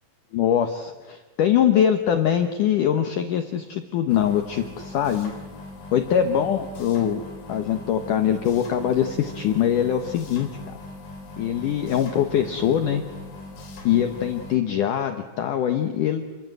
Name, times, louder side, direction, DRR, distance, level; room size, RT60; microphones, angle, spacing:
voice 1, 0.3-5.3 5.9-10.8 11.4-13.0 13.8-16.2, left 9 dB, 75° left, 7 dB, 1.9 m, -23 dB
sound 1, 4.1-14.6, left 2 dB, 50° left, 4.9 m, -40 dB
30.0 x 23.0 x 7.9 m, 1.3 s
omnidirectional pair, 5.5 m